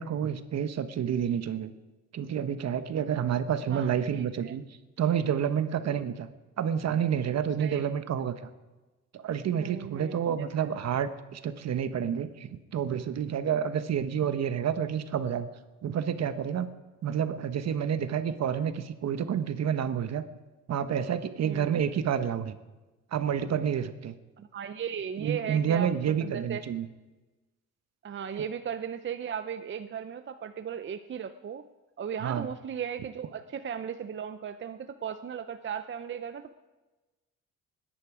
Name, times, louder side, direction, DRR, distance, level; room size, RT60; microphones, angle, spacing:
voice 1, 0.0-1.7 2.1-4.6 5.0-6.3 6.6-8.5 9.1-15.5 15.8-16.7 17.0-20.2 20.7-22.6 23.1-24.1 25.2-26.9 28.4-28.5 32.2-32.5, right 8 dB, 60° right, 10 dB, 1.2 m, -29 dB
voice 2, 3.7-4.5 5.9-6.1 7.6-8.0 9.5-10.3 10.6-10.7 21.4-21.7 24.4-26.6 28.0-31.6 32.0-36.6, right 8 dB, 40° right, 9 dB, 0.7 m, -37 dB
20.0 x 10.5 x 4.9 m, 1.2 s
cardioid pair, 90°, 30 cm